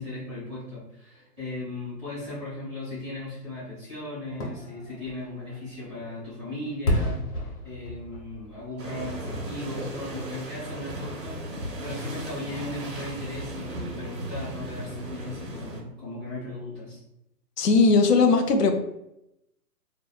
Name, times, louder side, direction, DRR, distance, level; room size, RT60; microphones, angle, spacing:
voice 1, 0.0-7.2 7.6-17.0, left 2 dB, 20° right, -12 dB, 1.0 m, -37 dB
Fireworks, 4.3-10.1 10.5-10.6, left 1 dB, 60° left, 0.9 m, -33 dB
sound 1, 8.8-15.8, right 1 dB, 85° right, 0.9 m, -36 dB
voice 2, 17.6-18.7, left 4 dB, 80° left, 5 dB, 0.6 m, -19 dB
2.7 x 2.1 x 2.3 m, 0.84 s
hypercardioid pair, 180°, 48 cm